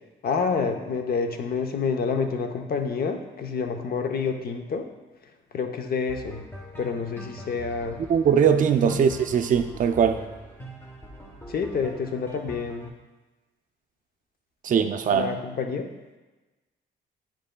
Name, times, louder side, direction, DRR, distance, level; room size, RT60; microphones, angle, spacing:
voice 1, 0.2-4.9 5.5-6.4 6.8-8.0 8.8-9.1 11.5-12.9 15.1-15.9, left 5 dB, 50° left, 5 dB, 0.7 m, -28 dB
sound 1, 6.1-12.9, equal, 10° left, 1.1 m, -44 dB
voice 2, 8.1-10.2 14.6-15.3, right 7 dB, 40° right, 7 dB, 0.5 m, -21 dB
8.9 x 5.3 x 2.2 m, 1.1 s
cardioid pair, 90°, 20 cm